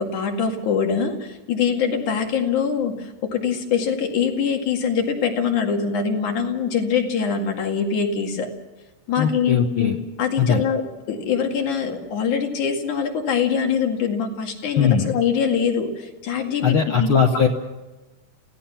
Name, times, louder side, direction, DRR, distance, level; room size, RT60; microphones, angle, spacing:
voice 1, 0.0-8.5 9.1-9.9 10.2-10.8 11.1-17.1, left 6 dB, 75° left, 2 dB, 3.7 m, -23 dB
voice 2, 9.2-10.0 10.4-10.6 14.8-15.1 16.6-17.5, left 7 dB, 55° left, 2 dB, 1.7 m, -19 dB
28.0 x 16.5 x 5.8 m, 1.1 s
omnidirectional pair, 3.6 m